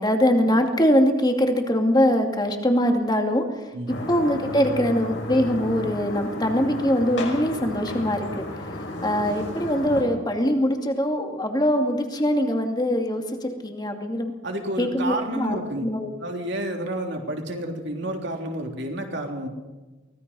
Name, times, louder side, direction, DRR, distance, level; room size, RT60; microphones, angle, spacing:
voice 1, 0.0-3.7 4.1-8.4 8.7-14.3 14.8-16.1, equal, 20° left, 4 dB, 2.4 m, -23 dB
sound 1, 3.9-10.0, left 1 dB, 60° left, 5.9 m, -33 dB
voice 2, 14.4-15.9 16.2-19.5, right 1 dB, 55° right, 2 dB, 3.4 m, -30 dB
24.0 x 19.5 x 5.6 m, 1.2 s
head